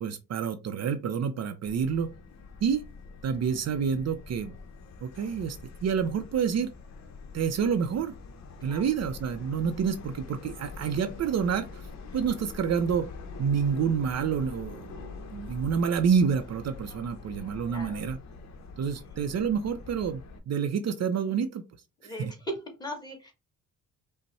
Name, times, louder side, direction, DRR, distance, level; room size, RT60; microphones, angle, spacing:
voice 1, 0.0-2.1 2.6-2.8 3.2-4.5 5.0-6.7 7.3-8.1 8.6-11.8 12.1-13.1 13.4-18.2 18.8-21.6 22.2-22.3, right 7 dB, 55° right, 0.6 m, -28 dB
Subway metro underground, 1.6-20.4, left 4 dB, 60° left, 0.9 m, -44 dB
voice 2, 17.7-18.0 22.0-23.3, equal, 10° left, 1.5 m, -38 dB
5.3 x 2.1 x 4.1 m
cardioid pair, 125°, 32 cm